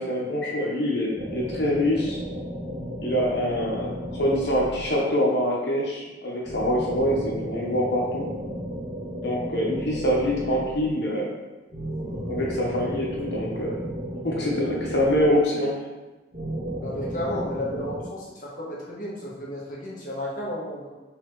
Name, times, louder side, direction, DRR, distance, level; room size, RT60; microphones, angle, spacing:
voice 1, 0.0-2.2 3.0-8.3 9.2-11.3 12.3-13.8 14.2-15.8, equal, 75° left, -3 dB, 1.1 m, -25 dB
sound 1, 1.1-5.3 6.4-11.1 11.7-15.7 16.3-18.0, equal, 60° right, 1.4 m, -34 dB
voice 2, 16.8-20.9, left 1 dB, 45° left, -5 dB, 1.2 m, -33 dB
4.1 x 3.5 x 3.1 m, 1.1 s
head